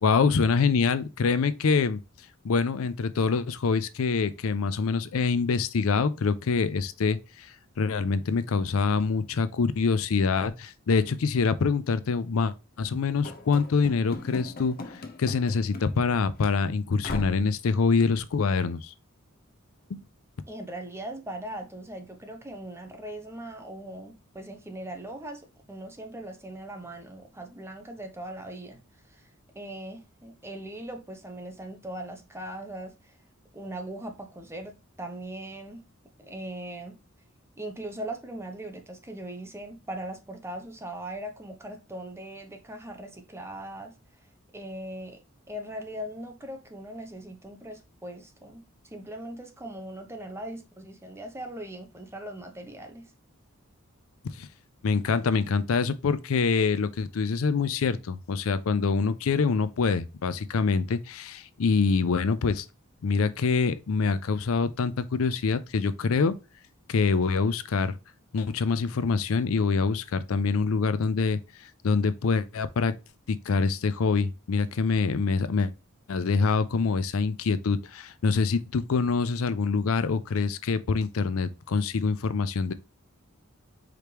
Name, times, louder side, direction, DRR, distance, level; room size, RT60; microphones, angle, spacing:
voice 1, 0.0-2.0 2.4-18.9 19.9-20.0 54.3-54.5 54.8-62.7 63.0-66.3 66.9-67.9 68.3-71.4 71.8-72.9 73.3-75.7 76.1-82.7, left 4 dB, 70° left, 0.5 m, -25 dB
Run / Slam, 13.2-16.1 16.4-16.6 17.0-17.5, left 2 dB, 45° left, 0.8 m, -39 dB
voice 2, 20.5-28.8 29.1-29.3 29.5-33.1 33.5-35.8 36.2-37.0 37.6-43.9 44.5-45.2 45.5-53.1, right 1 dB, 10° right, 0.9 m, -40 dB
5.0 x 3.3 x 2.9 m
head